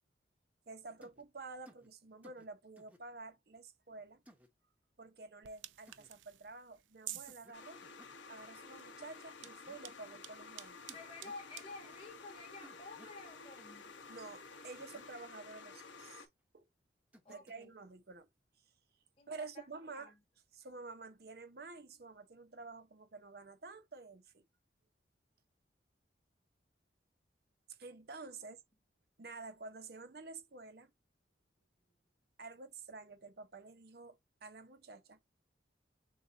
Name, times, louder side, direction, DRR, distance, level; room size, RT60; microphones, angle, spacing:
voice 1, 0.7-4.2 5.0-7.8 8.3-10.8 14.1-16.3 16.5-16.6 17.3-18.3 19.3-20.1 20.5-24.4 27.8-28.6 29.2-30.9 32.4-35.2, right 3 dB, 55° right, 0.8 m, -50 dB
sound 1, 1.0-1.2 1.7-1.9 2.2-2.5 2.8-3.0 4.3-4.5 5.9-6.1 7.3-7.5 7.8-8.2 9.4-9.8 10.9-11.4 12.6-13.2 14.8-15.0 17.1-17.7, equal, 10° right, 0.9 m, -60 dB
sound 2, 5.4-15.1, right 14 dB, 80° right, 0.4 m, -54 dB
sound 3, 7.5-16.3, left 4 dB, 80° left, 0.9 m, -53 dB
voice 2, 10.9-14.0 17.2-17.7 19.2-19.7 19.9-20.2, left 3 dB, 30° left, 1.6 m, -51 dB
6.6 x 2.5 x 2.7 m
head